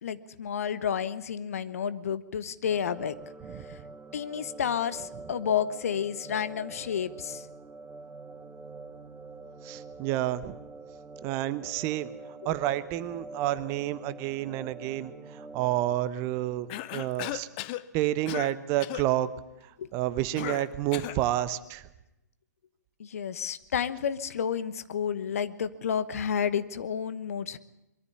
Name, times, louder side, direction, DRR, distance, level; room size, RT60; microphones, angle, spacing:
voice 1, 0.0-3.1 4.1-7.4 19.8-19.9 23.0-27.6, left 8 dB, 55° left, 14 dB, 1.1 m, -30 dB
sound 1, 2.7-15.9, right 3 dB, 10° right, 1.4 m, -46 dB
voice 2, 9.6-10.6 11.2-12.1 12.4-17.5 17.9-19.3 19.9-21.8, right 14 dB, 30° right, 15 dB, 1.0 m, -29 dB
Cough, 16.7-17.8 18.3-18.5 18.8-19.1 20.4-21.2, left 15 dB, 35° left, 0.8 m, -36 dB
22.5 x 14.0 x 9.6 m, 0.89 s
figure-of-eight pair, 120°, 9 cm